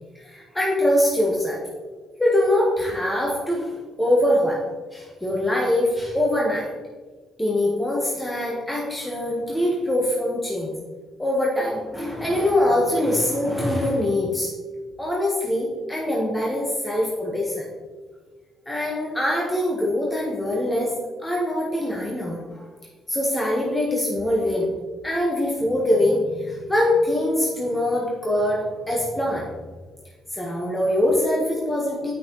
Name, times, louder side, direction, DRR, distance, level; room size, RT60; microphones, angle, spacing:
voice 1, 0.1-1.6 2.2-4.6 4.9-6.7 7.4-10.7 11.2-14.5 15.0-17.7 18.7-20.9 21.2-22.6 23.1-24.7 25.0-29.5 30.3-32.1, left 1 dB, 10° left, -4 dB, 1.4 m, -23 dB
8.4 x 5.9 x 3.2 m, 1.4 s
cardioid pair, 90°, 0 cm